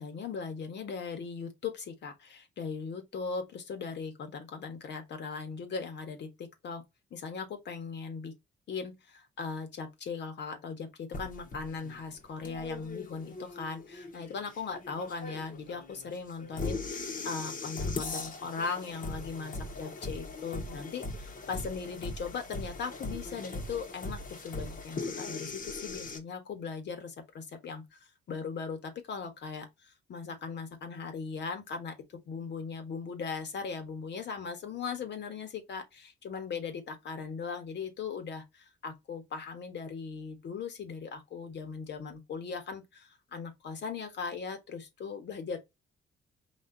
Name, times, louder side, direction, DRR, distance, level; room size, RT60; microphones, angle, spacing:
voice 1, 0.0-6.8 7.1-8.3 8.7-45.6, left 5 dB, 60° left, 1.5 m, -39 dB
sound 1, 11.1-26.2, left 3 dB, 45° left, 1.3 m, -40 dB
4.3 x 2.7 x 3.9 m
cardioid pair, 90°, 20 cm